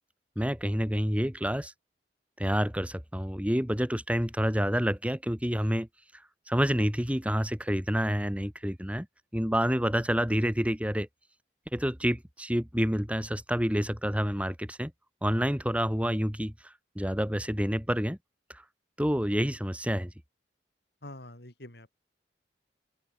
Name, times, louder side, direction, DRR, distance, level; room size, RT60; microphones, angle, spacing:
voice 1, 0.4-1.7 2.4-5.9 6.5-9.1 9.3-11.1 11.7-14.9 15.2-18.2 18.5-18.6 19.0-20.1, equal, 10° right, 4.0 m, -28 dB
voice 2, 21.0-22.0, left 1 dB, 65° left, 5.6 m, -46 dB
open air
head